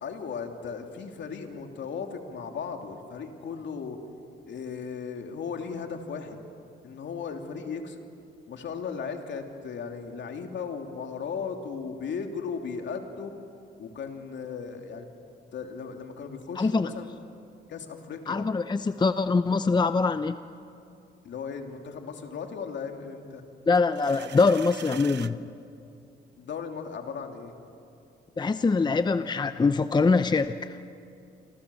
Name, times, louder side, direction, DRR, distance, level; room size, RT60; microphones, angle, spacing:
voice 1, 0.0-4.0 4.4-6.4 6.8-8.0 8.5-13.3 13.8-15.1 15.5-17.1 17.7-18.5 21.2-23.4 26.4-27.5 28.7-28.8, left 6 dB, 65° left, 4 dB, 3.0 m, -36 dB
voice 2, 16.6-16.9 18.3-20.4 23.7-25.5 28.4-30.8, left 4 dB, 20° left, 11 dB, 0.7 m, -24 dB
sound 1, 23.7-25.3, right 10 dB, 60° right, 0.9 m, -43 dB
28.5 x 26.5 x 7.2 m, 2.6 s
cardioid pair, 90°, 20 cm